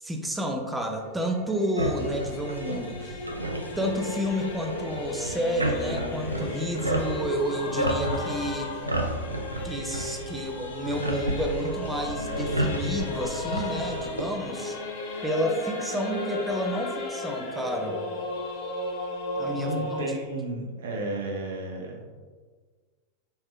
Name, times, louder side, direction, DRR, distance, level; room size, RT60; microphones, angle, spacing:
voice 1, 0.0-3.2 3.8-8.8 9.6-14.8 15.2-18.0 19.4-20.0, equal, 5° right, 2 dB, 0.5 m, -30 dB
Singing / Musical instrument, 0.7-20.1, left 2 dB, 50° left, 0.7 m, -35 dB
sound 1, 1.8-14.2, right 1 dB, 80° right, 0.4 m, -32 dB
voice 2, 19.5-22.0, right 2 dB, 60° right, 1 dB, 0.8 m, -32 dB
5.3 x 3.5 x 2.5 m, 1.5 s
figure-of-eight pair, 90°, 0 cm